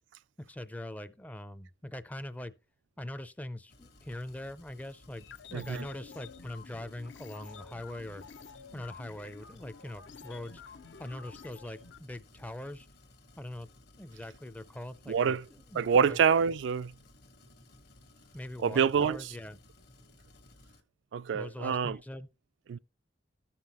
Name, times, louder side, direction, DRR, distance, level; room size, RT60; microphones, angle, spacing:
voice 1, 0.4-2.5 3.0-8.2 8.7-10.6 11.0-12.9 13.4-13.7 14.0-16.2 18.3-19.6 21.3-22.3, left 1 dB, 10° left, 0.4 m, -42 dB
sound 1, 3.7-20.8, left 1 dB, 60° left, 1.3 m, -58 dB
sound 2, 5.2-12.0, left 6 dB, 80° left, 0.7 m, -50 dB
voice 2, 5.5-5.9 15.1-15.4 15.8-16.9 18.6-19.3 21.1-22.0 22.7-22.8, right 6 dB, 80° right, 0.3 m, -26 dB
14.5 x 5.7 x 2.9 m
head